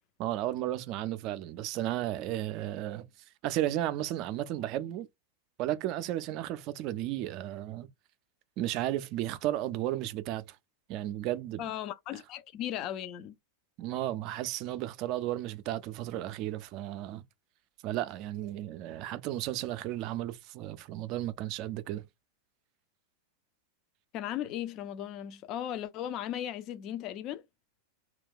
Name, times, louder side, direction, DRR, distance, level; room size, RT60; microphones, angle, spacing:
voice 1, 0.2-3.1 3.4-5.1 5.6-7.9 8.6-10.6 10.9-11.7 13.8-17.2 17.8-22.0, right 13 dB, 40° right, 0.3 m, -34 dB
voice 2, 11.6-13.3 24.1-27.4, left 11 dB, 40° left, 0.3 m, -37 dB
2.2 x 2.2 x 3.6 m
figure-of-eight pair, 90°, 0 cm